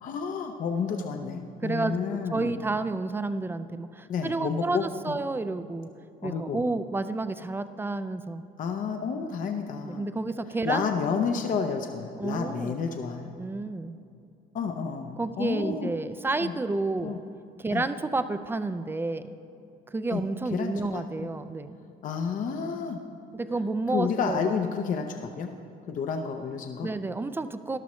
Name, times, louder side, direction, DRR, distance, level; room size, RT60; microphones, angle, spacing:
voice 1, 0.0-2.5 4.1-5.2 6.2-6.6 8.6-10.1 10.6-13.3 14.5-15.9 16.4-16.5 17.0-17.2 17.7-17.9 20.1-20.2 20.5-21.0 22.0-23.0 23.9-25.5 25.9-26.9, left 6 dB, 50° left, 4 dB, 0.7 m, -30 dB
voice 2, 1.6-2.0 2.3-5.9 6.2-8.4 9.9-10.9 12.2-12.8 13.4-14.0 15.2-17.2 17.6-19.3 19.9-21.8 23.3-24.5 26.8-27.8, right 3 dB, 15° right, 11 dB, 0.4 m, -30 dB
13.5 x 11.5 x 3.1 m, 2.6 s
cardioid pair, 110°, 17 cm